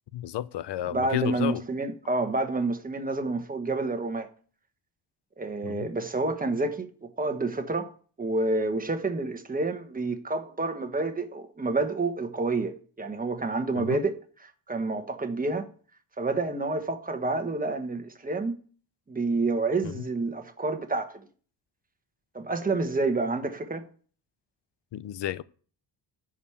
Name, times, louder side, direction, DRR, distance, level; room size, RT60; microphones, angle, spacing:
voice 1, 0.1-1.6 5.6-5.9 13.8-14.0 19.8-20.0 24.9-25.4, left 12 dB, 70° left, 0.6 m, -32 dB
voice 2, 0.9-4.3 5.4-7.9 8.2-14.1 14.4-15.7 16.2-18.6 19.1-21.3 22.3-23.9, right 3 dB, 20° right, 1.2 m, -29 dB
10.5 x 5.0 x 6.9 m
wide cardioid pair, 150°, 43 cm